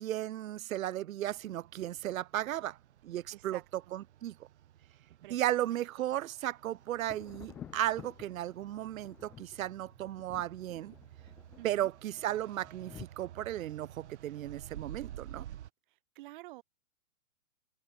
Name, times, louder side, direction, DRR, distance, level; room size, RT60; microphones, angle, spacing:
voice 1, 0.0-2.8 3.0-3.6 3.9-4.5 5.3-10.9 11.6-15.5, right 13 dB, 75° right, 0.7 m, -35 dB
sound 1, 1.2-15.7, right 11 dB, 55° right, 4.4 m, -52 dB
voice 2, 3.3-3.9 5.2-5.8 11.6-11.9 16.1-16.6, right 18 dB, 35° right, 3.2 m, -50 dB
Thunder, 6.9-13.1, left 9 dB, 5° left, 0.4 m, -52 dB
hypercardioid pair, 160°, 41 cm